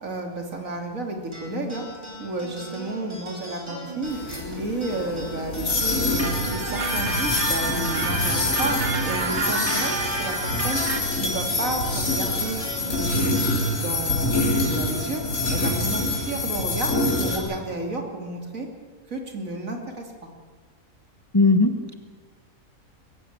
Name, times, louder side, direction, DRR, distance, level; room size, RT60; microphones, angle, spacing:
voice 1, 0.0-1.9 2.2-4.2 4.6-6.3 6.5-8.8 9.0-10.8 11.2-13.4 13.7-15.2 15.5-18.7 19.1-20.1, right 2 dB, 70° right, 3 dB, 3.2 m, -31 dB
sound 1, 1.3-16.1, equal, 20° right, 4.7 m, -39 dB
sound 2, 4.0-17.4, left 2 dB, 90° left, 4.2 m, -26 dB
sound 3, 6.2-11.0, right 3 dB, 55° right, 2.1 m, -29 dB
voice 2, 21.3-21.9, left 3 dB, 20° left, 6 dB, 1.0 m, -18 dB
22.5 x 15.0 x 8.8 m, 1.5 s
omnidirectional pair, 1.4 m